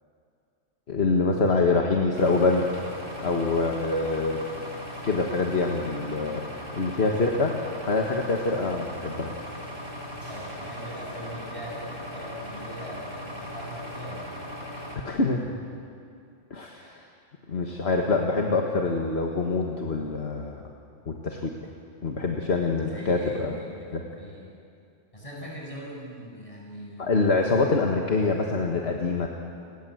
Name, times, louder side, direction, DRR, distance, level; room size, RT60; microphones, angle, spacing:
voice 1, 0.9-2.6 3.2-4.4 5.0-6.4 6.7-7.6 7.9-9.3 15.0-15.6 16.5-17.0 17.5-20.6 21.1-21.5 22.0-23.6 23.9-24.0 27.0-29.3, left 3 dB, 60° left, 1 dB, 1.9 m, -25 dB
sound 1, 2.1-15.0, equal, 55° right, 4.6 m, -38 dB
voice 2, 10.1-14.5 22.8-24.6 25.1-27.2, equal, 25° left, -3 dB, 7.7 m, -41 dB
29.5 x 20.0 x 7.9 m, 2.5 s
omnidirectional pair, 1.3 m